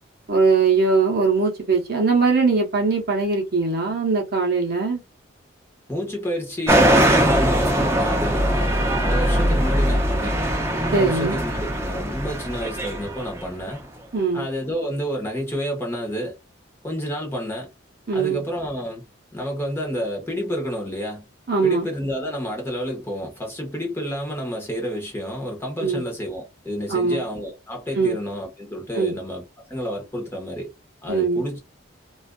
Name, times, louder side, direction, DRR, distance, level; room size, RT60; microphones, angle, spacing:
voice 1, 0.3-5.0 10.9-11.4 14.1-14.5 18.1-18.4 21.5-21.9 25.8-26.0 26.9-27.2 28.0-28.2 28.9-29.1 31.1-31.4, right 4 dB, 50° right, 0.8 m, -21 dB
voice 2, 5.9-10.3 10.8-13.8 14.3-16.3 16.8-17.7 18.1-19.0 19.3-21.3 21.6-30.7 31.0-31.6, equal, 10° left, 0.8 m, -30 dB
sound 1, 6.7-13.7, right 1 dB, 15° right, 0.4 m, -21 dB
2.5 x 2.4 x 2.2 m
head